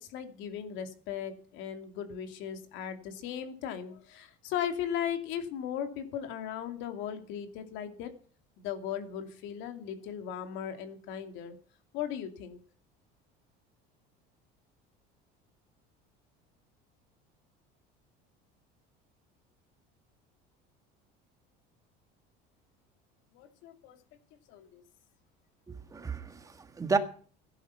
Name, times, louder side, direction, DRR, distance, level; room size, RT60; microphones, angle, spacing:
voice 1, 0.0-8.1 8.6-11.5 11.9-12.6 23.3-24.0 24.5-24.8, left 9 dB, 65° left, 2.6 m, -37 dB
voice 2, 25.7-27.0, right 4 dB, 15° right, 1.6 m, -32 dB
16.0 x 11.0 x 5.7 m
cardioid pair, 150°, 20 cm